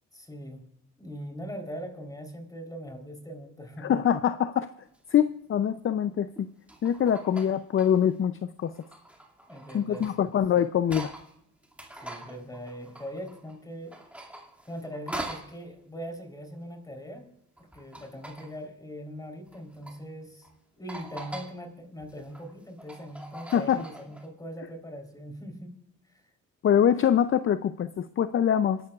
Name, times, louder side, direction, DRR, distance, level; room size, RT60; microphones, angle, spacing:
voice 1, 0.1-0.6 1.0-3.9 9.5-10.4 11.9-13.9 14.7-17.3 17.6-20.5 20.7-25.7, equal, 10° left, 4 dB, 3.8 m, -41 dB
voice 2, 3.8-4.7 5.1-6.5 6.8-8.7 9.7-11.1 23.5-23.8 26.6-28.8, left 9 dB, 45° left, 12 dB, 0.6 m, -24 dB
sound 1, 4.9-5.1 6.3-8.1 8.6-11.3 11.6-13.6 13.9-15.6 17.6-18.6 19.5-20.0 20.4-20.5 20.9-21.5 22.0-24.3, right 1 dB, 5° right, 2.4 m, -43 dB
27.0 x 11.5 x 2.4 m, 0.75 s
cardioid pair, 90°, 30 cm